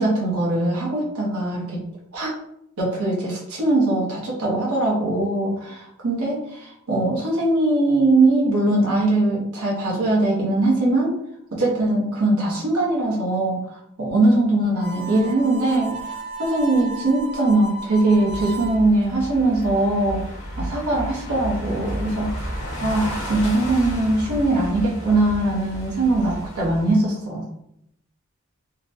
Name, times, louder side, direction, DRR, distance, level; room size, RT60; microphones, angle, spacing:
voice 1, 0.0-1.8 2.1-2.3 2.8-11.1 11.5-13.6 14.0-16.0 16.4-20.2 20.6-27.4, right 2 dB, 90° right, -5 dB, 1.0 m, -21 dB
Harmonica, 14.7-18.8, right 2 dB, 30° right, 0.4 m, -34 dB
sound 1, 18.1-26.9, equal, 60° left, 1.2 m, -32 dB
3.8 x 2.2 x 2.7 m, 0.76 s
head